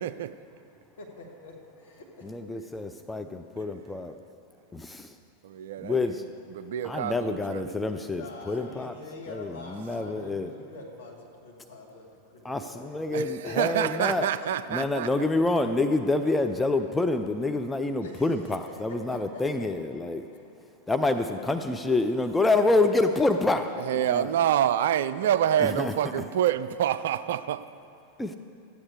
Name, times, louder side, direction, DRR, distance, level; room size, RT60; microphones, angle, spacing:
voice 1, 0.0-0.3 5.4-7.8 13.1-15.1 23.7-27.7, right 10 dB, 60° right, 0.3 m, -27 dB
voice 2, 1.0-2.7 7.9-14.5 18.0-19.7 23.3-24.4 25.3-26.2, left 3 dB, 65° left, 1.7 m, -45 dB
voice 3, 2.2-4.1 4.7-5.1 5.8-6.2 6.8-8.9 9.3-10.5 12.4-14.3 14.7-20.2 20.9-23.6 24.0-24.3 25.6-25.9 28.2-28.4, left 2 dB, 10° left, 0.4 m, -27 dB
13.5 x 8.6 x 4.7 m
figure-of-eight pair, 90°, 0 cm